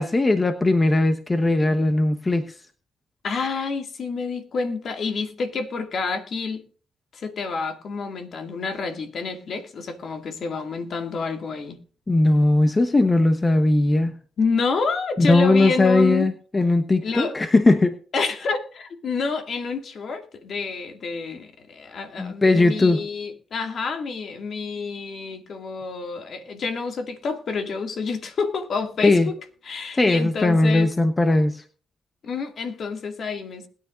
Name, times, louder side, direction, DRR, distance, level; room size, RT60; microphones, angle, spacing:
voice 1, 0.0-2.5 12.1-14.1 15.2-17.9 22.2-23.0 29.0-29.3 29.9-31.6, left 2 dB, 25° left, 1.1 m, -19 dB
voice 2, 3.2-6.6 7.1-11.8 14.4-16.3 17.0-17.4 18.1-29.2 29.7-30.9 32.2-33.7, left 4 dB, 60° left, 2.3 m, -28 dB
20.5 x 9.7 x 2.6 m
cardioid pair, 70°, 0 cm